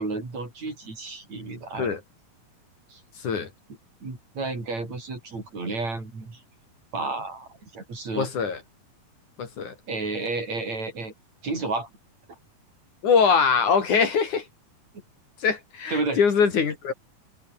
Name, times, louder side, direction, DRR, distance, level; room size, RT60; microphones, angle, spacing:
voice 1, 0.0-2.0 2.9-3.0 4.0-6.4 6.9-8.3 9.9-11.1 11.4-11.9 15.9-16.2, right 3 dB, 50° right, 8.3 m, -31 dB
voice 2, 3.2-3.5 8.2-8.6 9.4-9.7 13.0-14.5 15.4-16.9, left 6 dB, 55° left, 4.2 m, -22 dB
omnidirectional pair, 4.2 m